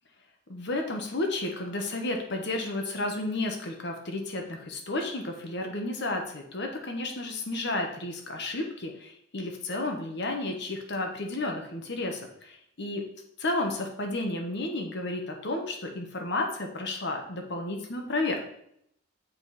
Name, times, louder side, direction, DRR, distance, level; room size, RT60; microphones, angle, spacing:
voice 1, 0.5-13.1 13.4-18.4, left 2 dB, 60° left, 3 dB, 1.3 m, -32 dB
7.2 x 5.3 x 4.2 m, 0.72 s
head